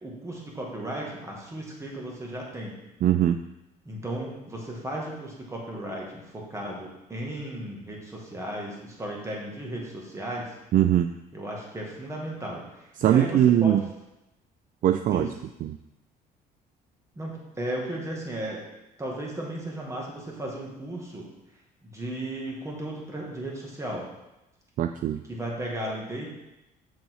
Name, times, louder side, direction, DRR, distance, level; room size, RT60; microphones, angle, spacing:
voice 1, 0.0-2.7 3.8-10.5 11.3-13.8 15.1-15.3 17.2-18.6 19.0-21.3 21.8-24.1 25.2-26.3, right 1 dB, 15° right, -2 dB, 2.1 m, -35 dB
voice 2, 3.0-3.4 10.7-11.1 13.0-13.8 14.8-15.3 24.8-25.2, right 11 dB, 50° right, 9 dB, 0.4 m, -20 dB
7.0 x 6.2 x 4.8 m, 0.95 s
cardioid pair, 110°, 17 cm